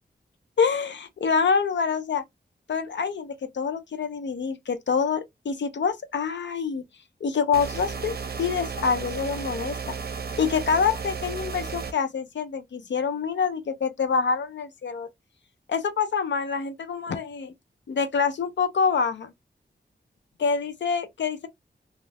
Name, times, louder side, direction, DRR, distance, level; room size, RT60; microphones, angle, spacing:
voice 1, 0.6-2.2 2.7-6.8 7.2-9.8 10.4-15.1 15.7-17.5 17.9-19.3 20.4-21.5, left 5 dB, 80° left, 0.5 m, -26 dB
sound 1, 7.5-11.9, right 5 dB, 60° right, 0.6 m, -34 dB
2.4 x 2.0 x 3.2 m
wide cardioid pair, 75°, 18 cm